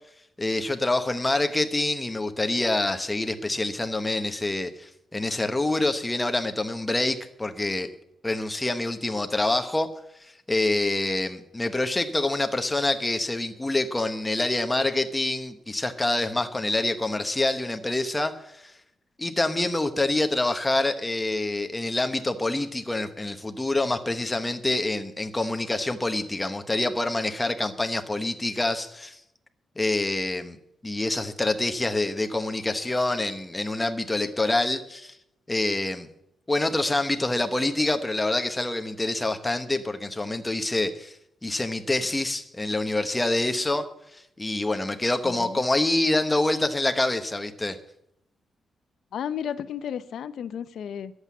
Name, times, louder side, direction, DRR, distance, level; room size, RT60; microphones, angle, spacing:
voice 1, 0.4-7.9 8.2-9.9 10.2-18.7 19.2-29.2 29.8-30.6 30.8-35.2 35.5-36.1 36.5-41.2 41.4-43.9 44.1-47.8, left 2 dB, 10° left, 8 dB, 1.0 m, -26 dB
voice 2, 45.2-45.6 49.1-51.1, left 8 dB, 70° left, 14 dB, 0.6 m, -33 dB
11.0 x 8.0 x 8.3 m, 0.78 s
wide cardioid pair, 155°, 0 cm